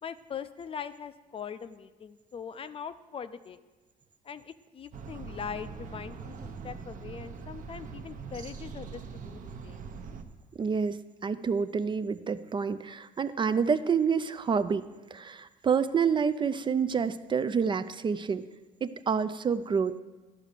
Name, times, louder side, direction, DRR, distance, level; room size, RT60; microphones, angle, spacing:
voice 1, 0.0-3.6 4.2-6.4 6.6-9.8, left 7 dB, 35° left, 13 dB, 0.4 m, -41 dB
sound 1, 4.9-10.2, right 5 dB, 50° right, 0.8 m, -42 dB
voice 2, 10.6-18.4 18.8-20.0, right 6 dB, 30° right, 12 dB, 0.4 m, -28 dB
11.5 x 4.9 x 6.5 m, 1.2 s
cardioid pair, 110°, 17 cm